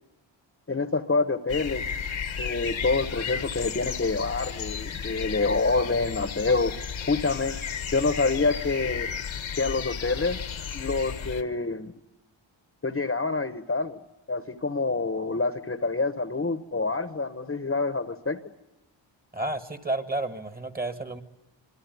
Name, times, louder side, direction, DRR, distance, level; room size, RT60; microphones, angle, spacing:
voice 1, 0.7-1.9 2.4-6.8 7.1-7.6 7.9-9.1 9.5-10.4 10.7-11.9 12.8-14.0 14.3-18.4, left 3 dB, 30° left, 11 dB, 1.2 m, -27 dB
sound 1, 1.5-11.4, left 7 dB, 80° left, 1.6 m, -34 dB
voice 2, 19.3-21.2, right 2 dB, 20° right, 9 dB, 1.8 m, -31 dB
27.0 x 23.0 x 9.4 m, 0.90 s
wide cardioid pair, 145°, 47 cm